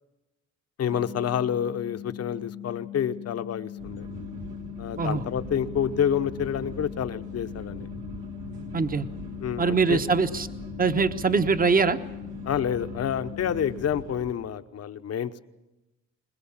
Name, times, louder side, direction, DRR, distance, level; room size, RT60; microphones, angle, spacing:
voice 1, 0.8-4.1 4.8-7.9 9.4-10.0 12.4-15.4, left 9 dB, 55° left, 11 dB, 1.0 m, -28 dB
sound 1, 0.9-13.9, left 12 dB, 85° left, 1.1 m, -40 dB
sound 2, 3.8-14.3, right 2 dB, 80° right, 1.7 m, -41 dB
voice 2, 8.7-9.1 9.6-10.5 10.8-12.0, right 4 dB, 30° right, 10 dB, 1.1 m, -23 dB
21.5 x 21.0 x 7.3 m, 1.0 s
cardioid pair, 90°, 30 cm